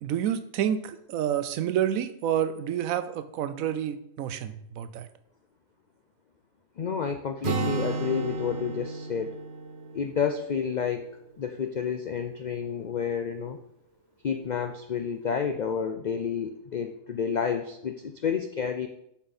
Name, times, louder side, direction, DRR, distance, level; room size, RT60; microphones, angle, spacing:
voice 1, 0.0-5.1, right 10 dB, 80° right, 11 dB, 1.0 m, -29 dB
voice 2, 6.8-9.4 9.9-11.1 11.4-13.6 14.2-18.9, left 7 dB, 80° left, 6 dB, 0.4 m, -30 dB
Acoustic guitar, 7.4-11.2, right 3 dB, 55° right, 1.1 m, -33 dB
7.5 x 6.1 x 4.1 m, 0.77 s
omnidirectional pair, 1.4 m